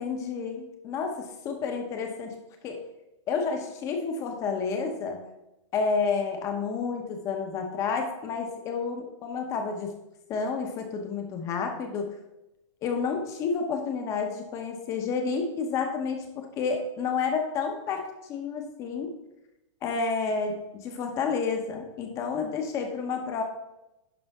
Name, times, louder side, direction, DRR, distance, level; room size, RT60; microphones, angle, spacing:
voice 1, 0.0-2.4 2.6-2.8 3.3-5.2 5.7-9.9 10.3-12.1 12.8-19.1 19.8-23.4, left 5 dB, 20° left, 4 dB, 0.9 m, -30 dB
11.0 x 4.9 x 3.6 m, 0.94 s
hypercardioid pair, 170°, 16 cm